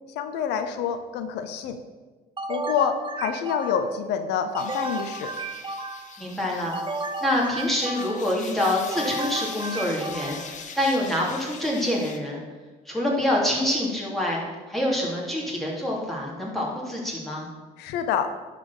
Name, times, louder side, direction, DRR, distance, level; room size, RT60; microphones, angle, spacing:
voice 1, 0.2-1.8 2.5-5.3 17.8-18.3, left 7 dB, 90° left, 8 dB, 0.8 m, -27 dB
sound 1, 2.4-4.0 4.5-6.2 6.7-8.4 8.9-10.6, right 2 dB, 30° right, 0.8 m, -33 dB
sound 2, 4.6-12.2, left 6 dB, 45° left, 1.1 m, -42 dB
voice 2, 6.2-6.7 7.2-12.4 12.9-14.4 14.7-17.5, left 1 dB, ahead, -5 dB, 3.1 m, -26 dB
11.0 x 4.3 x 7.3 m, 1.3 s
cardioid pair, 110°, 17 cm